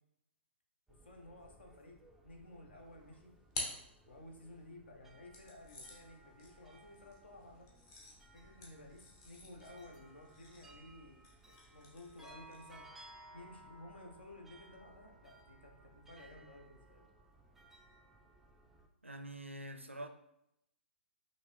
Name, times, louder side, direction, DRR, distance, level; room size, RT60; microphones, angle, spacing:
sound 1, 0.9-18.9, right 2 dB, 5° right, 0.4 m, -61 dB
voice 1, 1.0-2.0 2.2-3.3 4.1-7.7 8.3-12.9 13.3-17.0, left 1 dB, 60° left, 2 dB, 1.0 m, -55 dB
sound 2, 2.8-4.6 5.3-12.9, left 2 dB, 30° left, 1.0 m, -50 dB
voice 2, 19.0-20.1, right 1 dB, 85° right, 6 dB, 0.5 m, -45 dB
5.6 x 2.9 x 3.2 m, 0.80 s
figure-of-eight pair, 120°, 7 cm